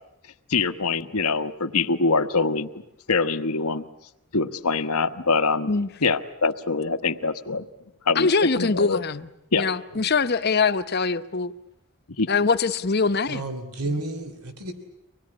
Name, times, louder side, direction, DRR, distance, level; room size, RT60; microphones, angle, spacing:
voice 1, 0.5-2.7 3.1-3.8 4.3-5.7 6.0-7.7 8.0-9.0 9.5-9.7 9.9-10.0 12.2-12.3, left 4 dB, 90° left, 1.3 m, -24 dB
voice 2, 8.1-9.3 9.6-11.5 12.3-13.5 13.8-14.0, left 4 dB, 45° left, 0.9 m, -23 dB
voice 3, 13.3-14.7, right 2 dB, 85° right, 3.1 m, -31 dB
25.5 x 20.0 x 9.8 m
head